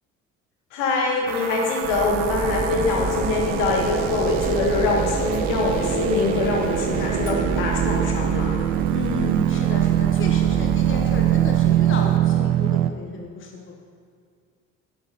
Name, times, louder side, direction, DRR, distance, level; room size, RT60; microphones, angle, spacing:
voice 1, 0.7-8.6, left 3 dB, 65° left, 0 dB, 1.7 m, -23 dB
sound 1, 1.3-12.9, right 13 dB, 60° right, 0.5 m, -24 dB
Printer, 1.8-12.2, right 4 dB, 20° right, 0.7 m, -29 dB
voice 2, 8.9-13.7, left 4 dB, 30° left, 2 dB, 1.0 m, -33 dB
11.0 x 8.1 x 4.1 m, 2.2 s
figure-of-eight pair, 55°, 41 cm